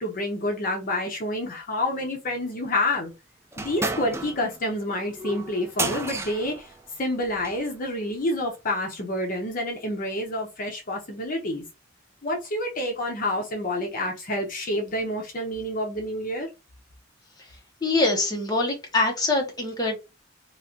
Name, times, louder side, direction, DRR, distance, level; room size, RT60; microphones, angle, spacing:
voice 1, 0.0-3.1 3.6-6.7 7.0-11.6 12.2-16.5, left 1 dB, 50° left, 0.8 m, -28 dB
sound 1, 3.5-7.7, right 3 dB, 15° right, 0.4 m, -33 dB
voice 2, 17.8-20.0, left 2 dB, 20° left, 0.9 m, -24 dB
3.2 x 2.4 x 2.7 m
head